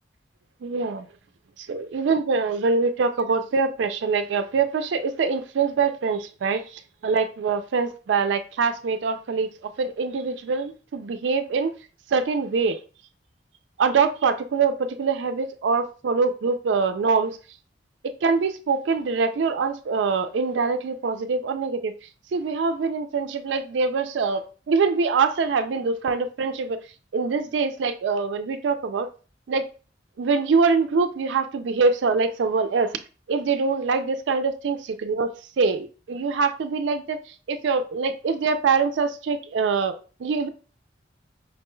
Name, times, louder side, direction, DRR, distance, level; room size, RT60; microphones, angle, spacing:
voice 1, 0.6-1.1 1.6-11.7 12.1-12.8 13.8-17.4 18.2-21.9 22.3-26.8 27.1-29.1 29.5-29.7 30.2-33.0 33.3-37.2 37.5-40.5, right 4 dB, 85° right, 9 dB, 0.4 m, -24 dB
5.2 x 2.2 x 3.0 m, 0.36 s
head